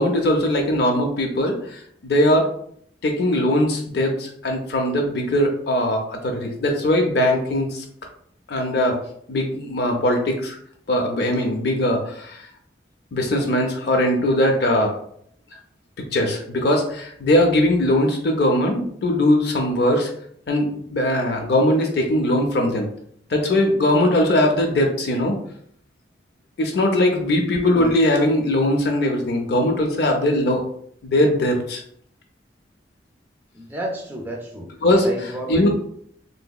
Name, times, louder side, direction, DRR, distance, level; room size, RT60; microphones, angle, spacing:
voice 1, 0.0-2.5 3.0-7.8 8.5-9.0 9.3-10.6 10.9-12.5 13.1-15.0 16.1-20.1 20.5-22.9 23.3-25.4 26.6-30.6 31.0-31.8 34.8-35.7, left 1 dB, 60° left, 2 dB, 0.4 m, -20 dB
voice 2, 33.5-34.7 35.0-35.7, equal, 10° right, -1 dB, 0.4 m, -30 dB
3.3 x 2.8 x 2.2 m, 0.65 s
head